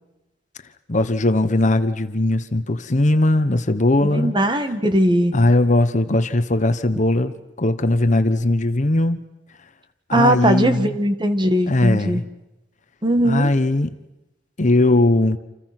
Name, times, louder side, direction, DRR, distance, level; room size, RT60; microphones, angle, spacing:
voice 1, 0.9-4.3 5.3-9.2 10.1-11.0 11.7-12.3 13.2-13.9 14.6-15.4, left 2 dB, 40° left, 11 dB, 1.2 m, -19 dB
voice 2, 4.1-5.4 10.1-12.2 13.0-13.5, right 1 dB, 25° right, 8 dB, 1.8 m, -19 dB
29.0 x 28.0 x 6.1 m, 0.96 s
head